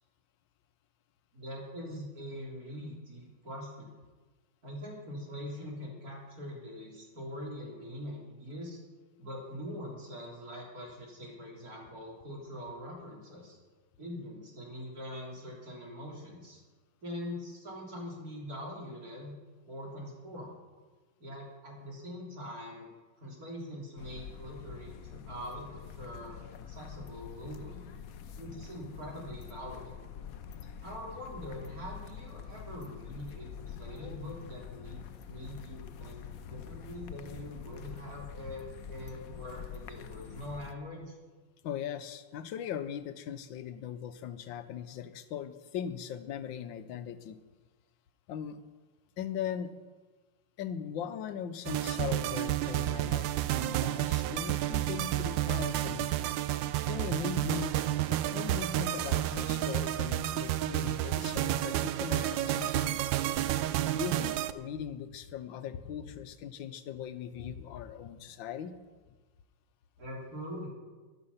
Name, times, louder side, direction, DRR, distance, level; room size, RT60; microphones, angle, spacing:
voice 1, 1.3-3.9 4.6-8.8 9.2-13.6 14.0-16.6 17.0-19.3 19.6-20.5 21.2-22.9 23.2-27.8 28.4-30.0 30.8-41.2 70.0-70.7, equal, 50° right, -2 dB, 4.1 m, -43 dB
sound 1, 24.0-40.7, left 7 dB, 60° left, 1.1 m, -46 dB
voice 2, 41.6-47.4 48.3-48.6 49.2-49.7 50.6-56.1 56.9-57.8 58.1-63.0 63.9-68.7, left 9 dB, 85° left, 11 dB, 1.6 m, -39 dB
sound 2, 51.7-64.5, right 13 dB, 85° right, 1.3 m, -30 dB
14.5 x 11.0 x 5.7 m, 1.3 s
omnidirectional pair, 2.0 m